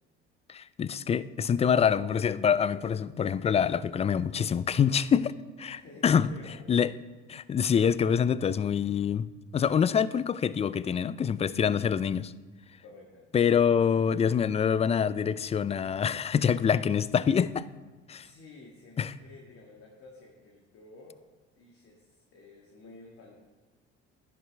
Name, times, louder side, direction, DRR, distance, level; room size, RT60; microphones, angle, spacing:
voice 1, 0.5-5.3 5.6-6.3 6.7-6.9 7.3-9.3 9.5-12.3 13.3-17.7 18.1-18.3 19.0-19.1, left 7 dB, 20° left, 0.3 m, -25 dB
voice 2, 5.6-6.6 12.8-13.3 18.2-21.2 21.6-23.4, left 3 dB, 50° left, 1.8 m, -51 dB
11.0 x 10.5 x 3.3 m
hypercardioid pair, 70°, 29 cm